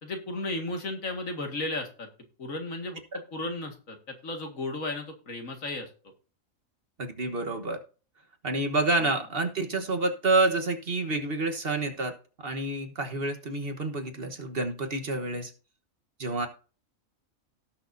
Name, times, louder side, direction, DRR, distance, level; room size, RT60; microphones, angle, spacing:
voice 1, 0.0-2.1 2.4-3.0 3.3-5.9 9.0-9.1, left 2 dB, 70° left, 4 dB, 2.4 m, -34 dB
voice 2, 7.0-7.8 8.4-15.5 16.2-16.5, right 2 dB, 45° right, 5 dB, 1.4 m, -28 dB
17.5 x 6.5 x 2.7 m, 0.36 s
omnidirectional pair, 1.4 m